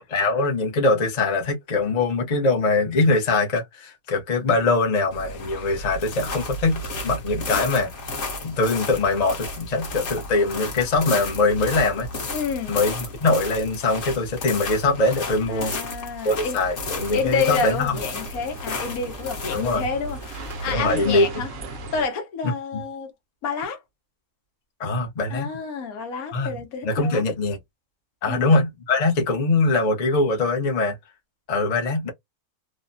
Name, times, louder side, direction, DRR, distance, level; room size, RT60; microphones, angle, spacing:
voice 1, 0.1-12.1 12.7-15.7 16.2-18.0 19.5-19.8 20.7-21.3 22.7-22.8 24.8-25.5 26.3-26.6 26.8-27.6 28.2-31.0 31.5-32.1, left 3 dB, 35° left, 0.8 m, -22 dB
sound 1, 5.1-22.0, left 2 dB, 55° left, 1.3 m, -33 dB
voice 2, 12.3-12.8 15.5-16.6 17.1-21.5 21.9-23.1 23.4-23.8 25.3-27.2 28.3-28.5, left 5 dB, 80° left, 1.3 m, -29 dB
sound 2, 16.8-22.0, right 1 dB, 65° right, 1.0 m, -38 dB
3.2 x 2.1 x 2.5 m
omnidirectional pair, 1.5 m